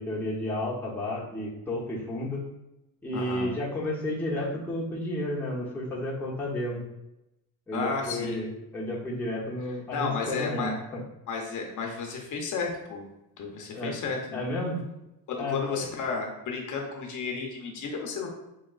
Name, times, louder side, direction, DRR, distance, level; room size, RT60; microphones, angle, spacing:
voice 1, 0.0-2.4 3.0-6.8 7.7-11.0 13.7-13.9 14.3-14.8 15.4-15.8, left 1 dB, 5° left, -5 dB, 0.8 m, -32 dB
voice 2, 3.1-3.5 7.7-8.4 9.9-10.7 11.3-13.0 13.4-14.4 15.3-18.3, left 4 dB, 50° left, 1 dB, 0.7 m, -32 dB
4.7 x 2.9 x 2.4 m, 0.91 s
cardioid pair, 135°, 40 cm